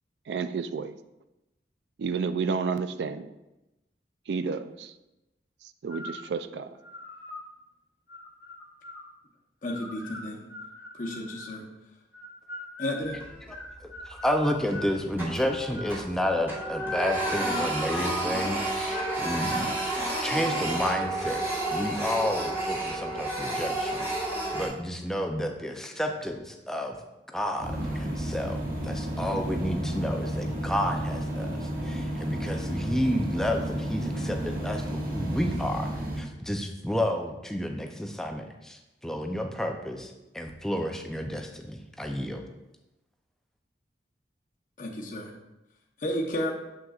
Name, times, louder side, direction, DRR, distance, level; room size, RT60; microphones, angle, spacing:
voice 1, 0.3-0.9 2.0-3.3 4.3-4.9 5.8-6.8, right 5 dB, 75° right, 12 dB, 0.4 m, -31 dB
sound 1, 5.9-6.3 6.8-7.5 8.1-9.1 9.6-11.6 12.1-15.0 15.4-16.0 16.5-18.5 18.9-19.2 19.5-19.9, left 2 dB, 80° left, 0.8 m, -40 dB
voice 2, 9.6-10.5 10.9-11.6 12.8-13.2 44.8-45.3 46.0-46.5, left 1 dB, 45° left, -2 dB, 0.8 m, -32 dB
Printer, 13.1-13.7 14.0-14.2 14.6-16.2 16.4-24.7, right 2 dB, 15° right, 1.3 m, -31 dB
voice 3, 13.8-21.4 21.7-27.0 27.3-28.6 28.8-35.9 36.2-42.4, equal, 5° left, 3 dB, 0.5 m, -31 dB
sound 2, 27.6-36.2, right 1 dB, 55° right, 1.1 m, -32 dB
7.3 x 6.2 x 2.4 m, 0.97 s
head